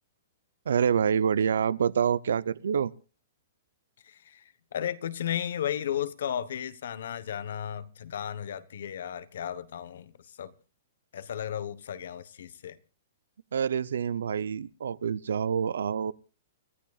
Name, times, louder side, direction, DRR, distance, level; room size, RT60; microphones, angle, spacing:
voice 1, 0.7-2.9 13.5-16.1, right 7 dB, 90° right, 0.6 m, -27 dB
voice 2, 4.0-10.1 10.4-10.5 11.1-12.8, left 9 dB, 70° left, 1.1 m, -34 dB
29.5 x 13.5 x 2.4 m
hypercardioid pair, 160°, 0 cm